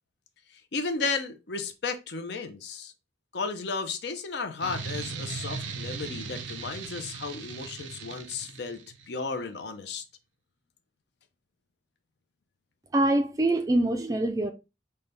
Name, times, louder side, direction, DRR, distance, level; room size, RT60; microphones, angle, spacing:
voice 1, 0.7-2.9 3.3-8.8 9.1-10.0, left 4 dB, 65° left, 0.6 m, -34 dB
sound 1, 4.6-9.1, right 4 dB, 85° right, 0.5 m, -38 dB
voice 2, 12.9-14.5, right 1 dB, 20° right, 0.4 m, -24 dB
5.5 x 2.2 x 3.3 m
head